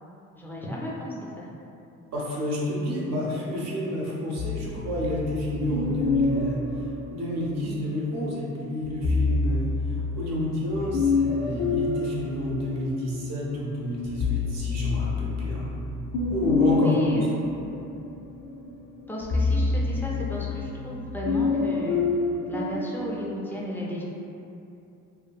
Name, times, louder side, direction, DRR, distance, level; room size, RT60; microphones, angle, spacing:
voice 1, 0.3-1.5 16.8-17.3 19.1-22.0 22.5-24.0, left 1 dB, 5° left, -5 dB, 0.4 m, -33 dB
voice 2, 2.1-6.6 7.1-9.7 10.1-15.7 16.3-17.3, left 1 dB, 60° right, -5 dB, 0.7 m, -29 dB
sound 1, 4.4-7.9 8.8-13.3 13.7-23.0, left 4 dB, 70° left, 0.5 m, -28 dB
2.6 x 2.6 x 2.2 m, 2.7 s
cardioid pair, 90°, 30 cm